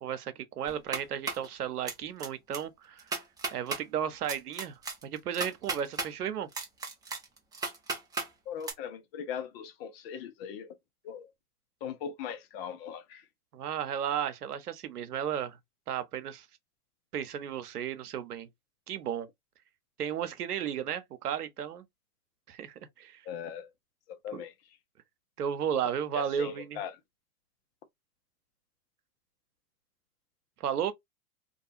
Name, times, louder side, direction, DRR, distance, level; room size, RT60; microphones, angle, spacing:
voice 1, 0.0-3.0 3.5-6.5 13.5-15.6 15.9-16.5 17.1-18.5 18.9-19.3 20.0-21.8 22.5-23.2 24.3-24.4 25.4-26.8 30.6-30.9, right 9 dB, 85° right, 0.7 m, -34 dB
sound 1, 0.7-1.5 1.9-2.3 2.5-2.6 3.0-3.8 4.3-6.1 6.5-8.3 8.6-8.7, right 3 dB, 10° right, 0.5 m, -34 dB
voice 2, 8.5-10.8 11.0-11.3 11.8-13.3 23.3-23.7 24.1-24.5 26.1-26.9, left 8 dB, 45° left, 0.6 m, -39 dB
2.4 x 2.3 x 2.7 m
hypercardioid pair, 105°, 45 cm